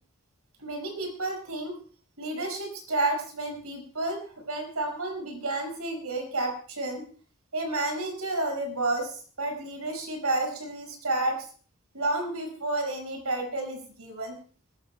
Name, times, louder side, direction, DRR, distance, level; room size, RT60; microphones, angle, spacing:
voice 1, 0.6-1.7 2.2-7.0 7.5-11.4 11.9-14.3, right 2 dB, 90° right, 2 dB, 5.5 m, -31 dB
25.0 x 14.0 x 2.2 m, 0.41 s
head